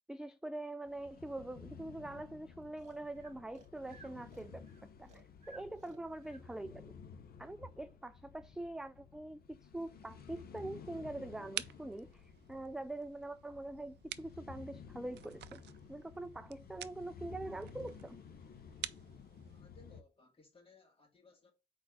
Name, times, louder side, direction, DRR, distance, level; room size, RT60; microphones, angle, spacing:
voice 1, 0.1-4.6 5.0-6.9 7.4-15.6 15.9-18.2, right 2 dB, 5° right, 0.3 m, -44 dB
sound 1, 0.8-20.0, left 6 dB, 55° left, 0.7 m, -54 dB
Breathing, 2.8-6.5, right 3 dB, 40° right, 1.6 m, -59 dB
sound 2, 9.8-19.6, right 12 dB, 70° right, 0.4 m, -50 dB
voice 2, 19.4-21.5, left 3 dB, 30° left, 2.3 m, -63 dB
4.4 x 4.1 x 5.5 m
cardioid pair, 90°, 18 cm